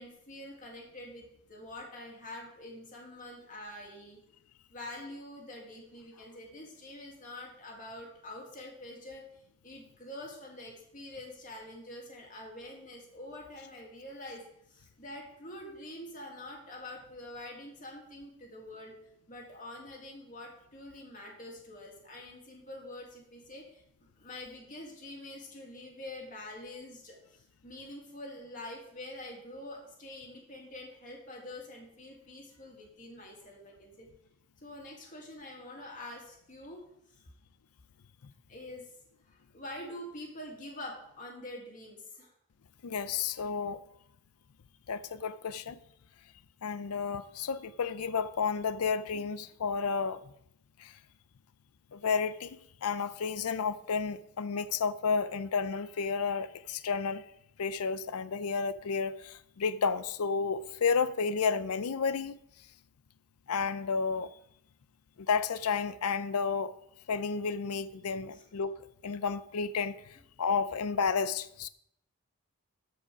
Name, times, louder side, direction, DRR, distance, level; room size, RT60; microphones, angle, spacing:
voice 1, 0.0-4.2 4.7-9.2 9.6-14.4 14.7-18.9 19.3-23.8 24.2-34.1 34.6-36.8 38.5-38.9 39.2-42.3 68.3-68.5, left 1 dB, 35° left, 2.2 m, -46 dB
voice 2, 42.8-43.8 44.9-45.8 46.6-50.2 50.8-50.9 51.9-57.2 57.6-62.4 63.5-64.3 65.2-66.7 67.1-68.8 69.0-69.9 70.4-71.7, left 5 dB, 85° left, 0.5 m, -31 dB
13.5 x 5.0 x 4.9 m
head